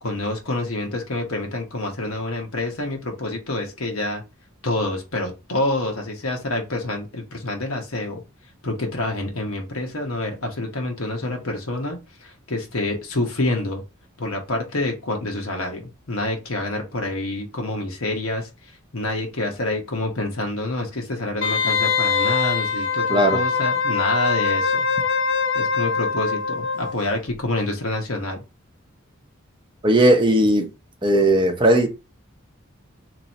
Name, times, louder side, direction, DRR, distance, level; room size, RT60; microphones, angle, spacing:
voice 1, 0.0-4.2 4.6-8.2 8.6-13.8 14.2-18.5 18.9-24.9 25.5-28.4, left 2 dB, 80° left, 1.0 m, -27 dB
Wind instrument woodwind instrument, 21.4-27.0 27.3-27.4, left 5 dB, 55° left, 0.4 m, -23 dB
voice 2, 29.8-30.7 31.0-31.9, right 1 dB, 20° right, 0.6 m, -17 dB
3.0 x 2.7 x 4.0 m
head